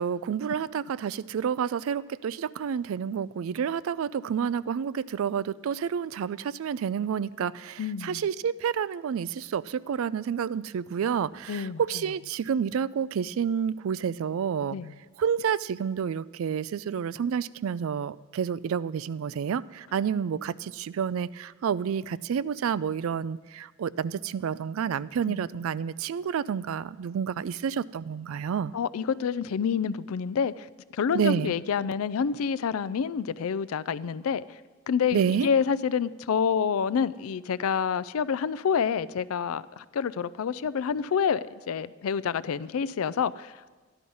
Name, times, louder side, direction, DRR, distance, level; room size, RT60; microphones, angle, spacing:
voice 1, 0.0-14.8 15.2-28.7 31.1-31.5 35.1-35.5, right 7 dB, 75° right, 19 dB, 0.3 m, -29 dB
voice 2, 7.8-8.2 11.5-11.8 14.7-14.9 25.3-25.4 28.7-30.7 30.9-34.6 34.9-43.8, left 6 dB, 80° left, 18 dB, 0.4 m, -28 dB
13.5 x 11.0 x 5.4 m, 1.3 s
head